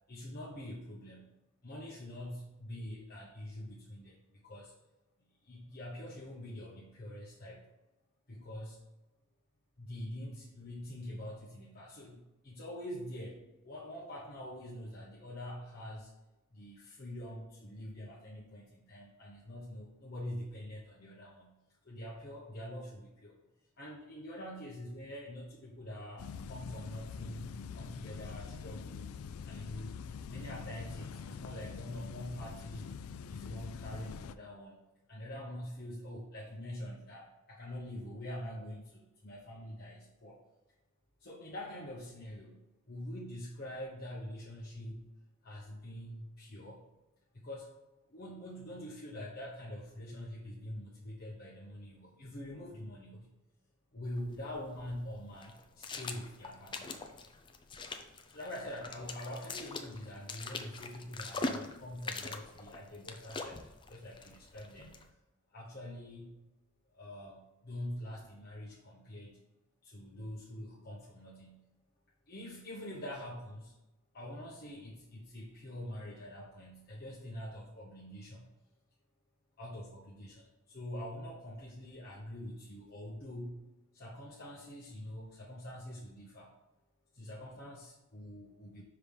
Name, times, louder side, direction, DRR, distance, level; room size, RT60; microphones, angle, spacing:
voice 1, 0.1-1.3 1.6-4.2 4.4-4.7 5.4-7.7 8.3-8.8 9.8-16.1 16.5-21.5 21.8-23.3 23.8-29.1 29.4-30.0 30.3-32.9 33.3-34.8 35.1-40.4 41.2-42.6 42.9-45.1 45.4-46.8 47.3-47.8 48.1-53.3 53.9-56.9 58.3-65.0 65.5-66.5 66.9-69.4 69.8-71.6 72.3-73.7 74.1-78.5 79.6-83.6 83.9-86.5 87.1-88.8, left 1 dB, 45° left, -5 dB, 0.9 m, -45 dB
sound 1, 26.2-34.3, left 6 dB, 80° left, 0.3 m, -45 dB
sound 2, 54.0-65.1, left 3 dB, 20° left, 0.5 m, -43 dB
5.8 x 3.3 x 5.3 m, 1.0 s
head